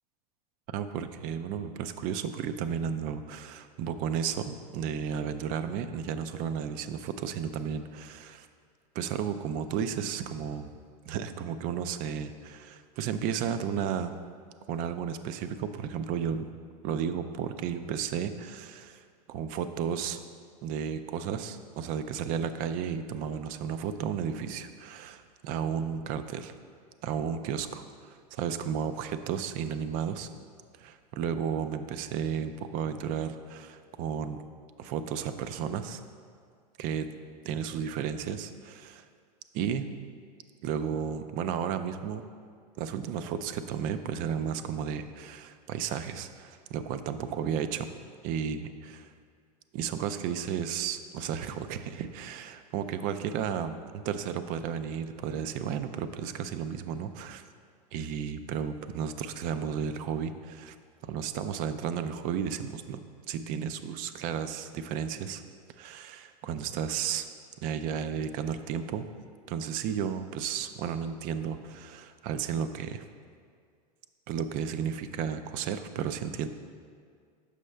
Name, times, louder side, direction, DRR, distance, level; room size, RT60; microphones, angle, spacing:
voice 1, 0.7-8.5 9.0-10.7 11.1-14.1 14.7-16.5 16.8-20.2 20.6-26.5 27.0-30.3 30.8-34.4 34.8-36.0 36.8-37.1 37.4-39.0 39.5-39.9 40.6-42.2 42.8-47.9 48.2-49.1 49.7-57.4 57.9-60.8 61.0-65.4 65.8-67.3 67.6-69.1 69.5-73.1 74.3-76.5, right 8 dB, 40° right, 11 dB, 0.4 m, -33 dB
6.4 x 5.4 x 3.3 m, 2.1 s
hypercardioid pair, 115°, 21 cm